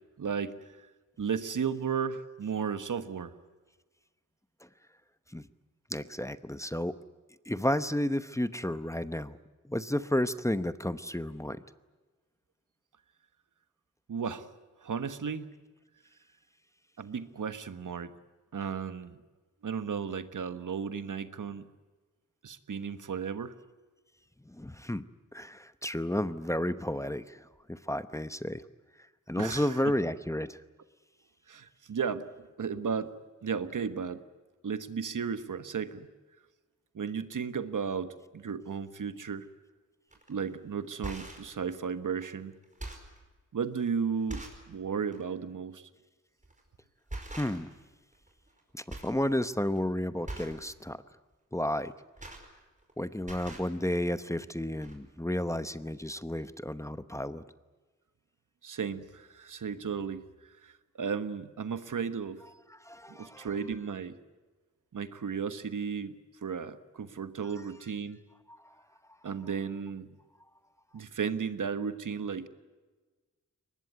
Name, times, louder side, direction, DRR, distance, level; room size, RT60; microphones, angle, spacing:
voice 1, 0.2-0.5 1.2-3.3 14.1-14.5 14.8-15.5 17.0-18.1 18.5-19.2 19.6-21.6 22.4-23.5 29.3-29.7 31.5-32.2 32.6-33.1 33.4-34.2 34.6-36.1 36.9-39.5 40.3-42.5 43.5-45.8 58.6-60.2 60.6-60.7 61.0-62.4 63.1-64.2 64.9-66.1 66.4-68.2 69.2-70.1 70.9-72.5, right 6 dB, 75° right, 12 dB, 1.3 m, -34 dB
voice 2, 5.9-7.0 7.5-9.4 9.6-11.6 24.5-25.0 25.3-28.6 29.3-30.6 47.4-47.7 48.7-51.0 51.5-51.9 53.0-57.4 62.7-63.5 68.5-68.6, left 1 dB, 10° left, 13 dB, 0.9 m, -32 dB
sound 1, 40.1-40.3 40.8-41.5 42.2-42.3 42.6-43.2 43.8-43.9 44.3-44.7 45.1-45.3 46.4-46.7 47.1-47.8 48.1-48.6 48.9-49.2 49.5-49.8 50.2-50.6 51.8-52.9 53.2-53.7 54.5-54.6 54.8-55.0, right 2 dB, 25° right, 5.1 m, -42 dB
23.0 x 20.0 x 9.5 m, 1.3 s
wide cardioid pair, 70°, 32 cm